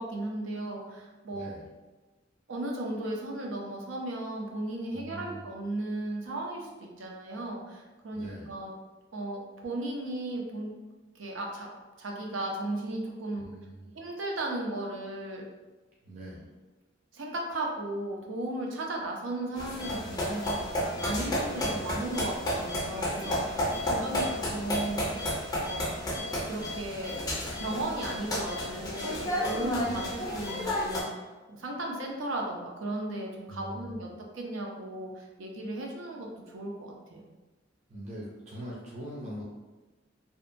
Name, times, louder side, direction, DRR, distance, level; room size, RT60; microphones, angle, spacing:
voice 1, 0.0-1.5 2.5-8.7 9.1-10.7 11.2-11.7 12.0-13.5 13.9-15.5 17.1-26.0 26.5-27.2 27.6-31.2 31.5-37.3, right 1 dB, 85° right, 0 dB, 0.5 m, -36 dB
voice 2, 1.3-1.7 4.9-5.5 8.1-8.5 13.3-13.9 16.0-16.5 21.6-22.0 23.9-24.4 29.8-30.2 33.5-34.0 37.9-39.4, right 1 dB, 35° right, -6 dB, 0.4 m, -42 dB
sound 1, 19.6-31.0, left 1 dB, 20° left, 0.4 m, -32 dB
2.7 x 2.1 x 2.5 m, 1.2 s
head